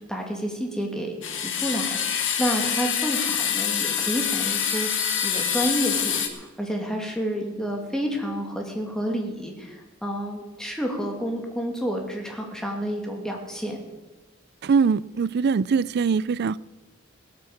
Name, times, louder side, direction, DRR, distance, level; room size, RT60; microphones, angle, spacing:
voice 1, 0.1-13.8, equal, 5° left, 1 dB, 2.4 m, -30 dB
sound 1, 1.2-6.3, left 8 dB, 65° left, 1.7 m, -26 dB
voice 2, 14.6-16.6, right 5 dB, 55° right, 20 dB, 0.4 m, -22 dB
18.0 x 8.6 x 7.2 m, 1.2 s
head